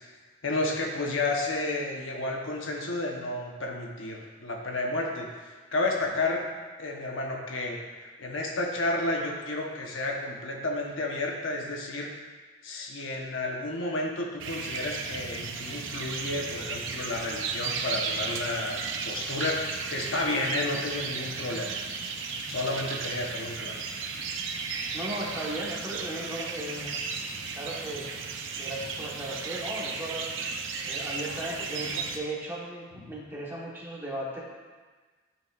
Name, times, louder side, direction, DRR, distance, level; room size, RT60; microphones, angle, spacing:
voice 1, 0.4-6.5 6.8-12.1 12.6-21.8 22.5-23.8 33.0-33.1, left 2 dB, 70° left, 0 dB, 1.0 m, -31 dB
sound 1, 14.4-32.2, right 5 dB, 65° right, 0.7 m, -35 dB
voice 2, 24.9-27.0 27.5-28.1 28.6-30.3 30.9-34.4, right 1 dB, 10° right, -5 dB, 1.2 m, -36 dB
11.0 x 5.9 x 2.5 m, 1.4 s
head